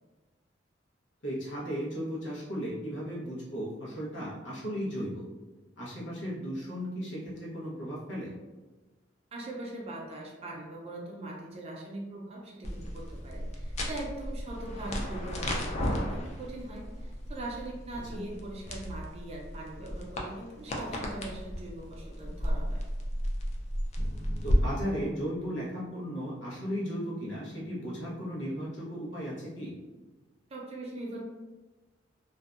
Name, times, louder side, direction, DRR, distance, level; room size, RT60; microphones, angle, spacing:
voice 1, 1.2-5.2 5.8-8.3 18.1-18.2 24.4-29.7, equal, 80° left, -5 dB, 0.8 m, -35 dB
voice 2, 9.3-22.8 30.5-31.2, right 2 dB, 35° right, -2 dB, 0.5 m, -41 dB
sound 1, 12.6-24.6, equal, 35° left, 0.4 m, -34 dB
2.6 x 2.1 x 2.4 m, 1.2 s
head